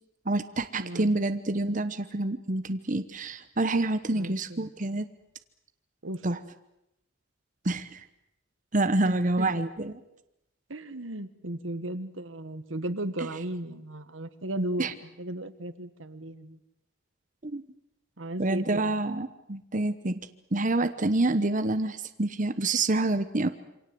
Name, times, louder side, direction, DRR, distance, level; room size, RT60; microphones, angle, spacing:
voice 1, 0.3-5.1 6.2-6.4 7.6-8.0 8.7-10.0 13.2-13.3 14.8-14.9 17.4-17.6 18.4-20.2 20.5-23.5, right 2 dB, 40° right, 9 dB, 1.0 m, -27 dB
voice 2, 0.8-1.1 4.1-4.7 6.0-6.2 9.0-9.5 10.7-14.9 15.2-16.6 18.2-18.9, right 1 dB, 85° right, 12 dB, 1.6 m, -35 dB
27.5 x 24.5 x 7.8 m, 0.87 s
head